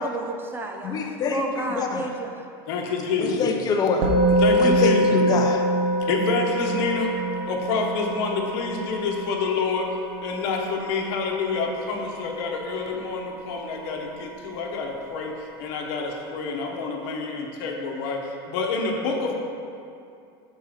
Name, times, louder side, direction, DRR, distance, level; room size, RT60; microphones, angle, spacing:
voice 1, 0.0-1.0 1.3-2.4, right 2 dB, 15° right, 3 dB, 0.5 m, -31 dB
voice 2, 0.8-2.1 3.2-4.1 4.6-5.6, left 4 dB, 30° left, 3 dB, 0.7 m, -25 dB
voice 3, 2.7-3.4 4.4-5.1 6.1-7.1 7.5-9.9 10.2-15.3 15.6-19.3, left 4 dB, 65° left, 1 dB, 1.0 m, -27 dB
Musical instrument, 4.0-13.5, right 1 dB, 45° right, 0.9 m, -25 dB
6.0 x 4.6 x 4.9 m, 2.5 s
supercardioid pair, 115°, 13 cm